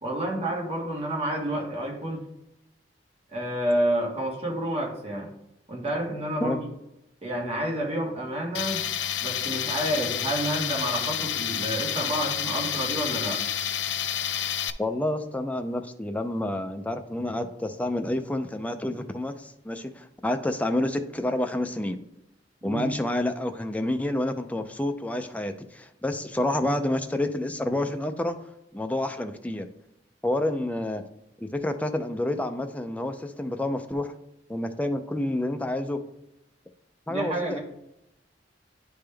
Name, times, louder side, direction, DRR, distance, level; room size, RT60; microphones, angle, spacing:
voice 1, 0.0-2.2 3.3-5.3 5.7-6.6 7.2-8.9 9.2-13.4 22.6-22.9 37.1-37.6, right 1 dB, 35° right, -2 dB, 1.7 m, -29 dB
Tools, 8.5-14.7, left 9 dB, 75° left, 0.4 m, -29 dB
voice 2, 14.8-22.0 22.6-28.4 28.7-29.7 30.2-31.0 31.4-34.1 34.5-36.0 37.1-37.6, left 1 dB, 10° left, 7 dB, 0.4 m, -29 dB
10.0 x 3.5 x 3.3 m, 0.85 s
head